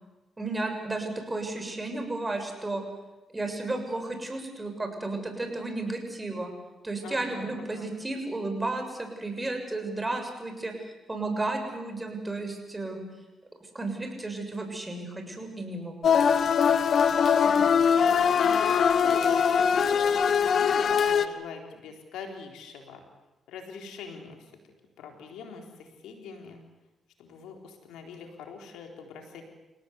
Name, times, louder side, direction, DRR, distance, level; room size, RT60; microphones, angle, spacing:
voice 1, 0.4-2.8 3.3-6.5 6.8-10.7 11.1-13.0 13.7-16.1, right 2 dB, 20° right, 4 dB, 6.9 m, -33 dB
voice 2, 7.0-7.9 17.4-23.0 23.5-24.5 25.0-26.6 27.2-29.4, left 5 dB, 90° left, 3 dB, 4.0 m, -42 dB
sound 1, 16.0-21.3, left 7 dB, 60° left, 1.2 m, -22 dB
29.5 x 18.0 x 8.3 m, 1.0 s
cardioid pair, 75°, 0 cm